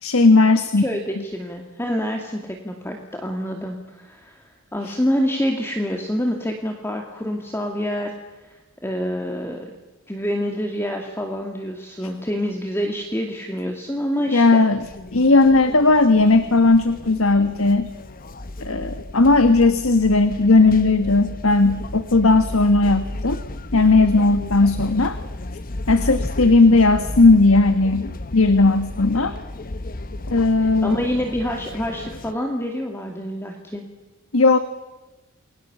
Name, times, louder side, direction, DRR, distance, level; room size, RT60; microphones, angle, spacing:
voice 1, 0.0-0.8 12.0-12.1 14.3-14.8 15.1-17.9 18.6-23.4 23.7-25.2 25.9-29.3 30.3-31.1 34.3-34.6, left 3 dB, 75° left, 10 dB, 1.4 m, -16 dB
voice 2, 0.8-8.1 8.5-9.7 10.1-14.6 30.8-33.8, equal, 10° left, 2 dB, 2.4 m, -27 dB
sound 1, 14.8-32.3, left 2 dB, 40° left, 1.0 m, -33 dB
29.0 x 22.0 x 7.0 m, 1.1 s
head